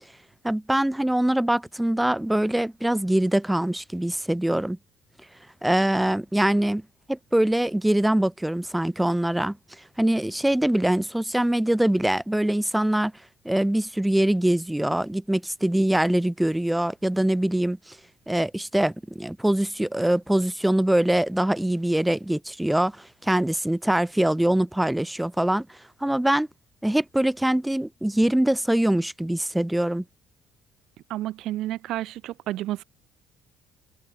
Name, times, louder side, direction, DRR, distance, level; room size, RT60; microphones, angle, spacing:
voice 1, 0.4-4.8 5.6-6.8 7.1-9.6 10.0-13.1 13.4-18.0 18.3-25.7 26.0-26.5 26.8-30.0, right 1 dB, 5° right, 1.0 m, -23 dB
voice 2, 31.1-32.8, right 15 dB, 65° right, 1.0 m, -30 dB
cardioid pair, 140°, 0 cm